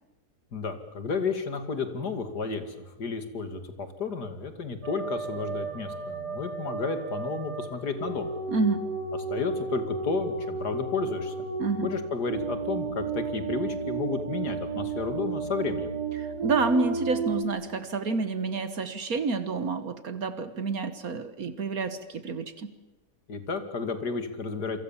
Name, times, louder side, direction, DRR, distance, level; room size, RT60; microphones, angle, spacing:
voice 1, 0.5-8.3 9.3-11.3 11.8-15.9 23.3-24.8, left 4 dB, 75° left, 9 dB, 2.8 m, -32 dB
sound 1, 4.8-17.4, right 5 dB, 80° right, 4.0 m, -33 dB
voice 2, 8.5-8.9 11.6-11.9 16.2-22.7, right 4 dB, 60° right, 11 dB, 1.8 m, -29 dB
28.5 x 23.5 x 7.3 m, 1.1 s
omnidirectional pair, 1.7 m